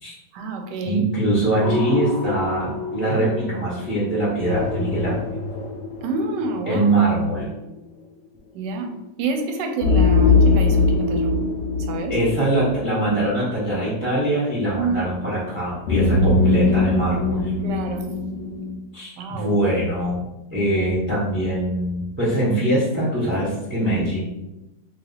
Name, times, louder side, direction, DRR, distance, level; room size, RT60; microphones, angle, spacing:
voice 1, 0.3-1.0 6.0-6.9 8.5-8.9 9.2-11.3 11.8-12.2 14.8-15.1 17.6-18.0 19.2-19.5, right 3 dB, 75° right, 4 dB, 1.2 m, -28 dB
voice 2, 0.8-5.2 6.7-7.5 12.1-17.5 18.9-24.2, right 1 dB, 15° right, -7 dB, 0.4 m, -23 dB
sound 1, 1.6-3.4 4.4-6.6 9.8-13.5 15.9-18.7, left 3 dB, 75° left, 0.6 m, -21 dB
3.2 x 2.8 x 3.9 m, 0.97 s
omnidirectional pair, 2.1 m